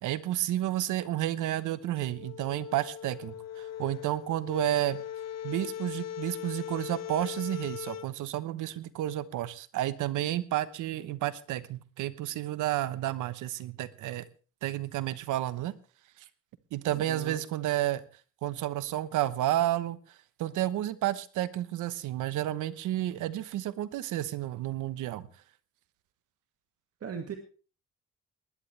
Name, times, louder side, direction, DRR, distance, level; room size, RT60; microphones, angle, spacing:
voice 1, 0.0-5.0 5.4-14.2 14.6-15.7 16.7-18.0 18.4-20.0 20.4-25.3, right 13 dB, 85° right, 15 dB, 1.1 m, -31 dB
sound 1, 2.0-8.1, left 10 dB, 60° left, 0.9 m, -40 dB
voice 2, 16.9-17.4 27.0-27.4, right 7 dB, 55° right, 5 dB, 2.0 m, -38 dB
19.5 x 11.5 x 3.4 m, 0.38 s
cardioid pair, 90°, 30 cm